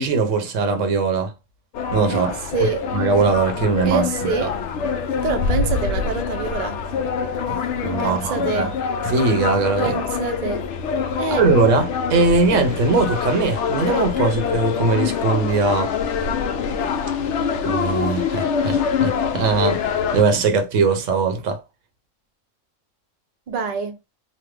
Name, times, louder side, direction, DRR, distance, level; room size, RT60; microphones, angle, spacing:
voice 1, 0.0-1.3 1.9-2.3 2.6-4.5 7.5-8.7 9.0-10.0 11.4-15.9 17.6-21.6, right 4 dB, 80° right, 1.0 m, -20 dB
sound 1, 1.7-20.2, left 6 dB, 70° left, 0.8 m, -25 dB
voice 2, 2.1-2.9 3.9-4.5 5.2-6.8 8.0-8.7 9.8-10.6 11.2-11.4 23.5-24.0, right 5 dB, 50° right, 0.5 m, -26 dB
3.1 x 2.1 x 3.2 m
omnidirectional pair, 1.3 m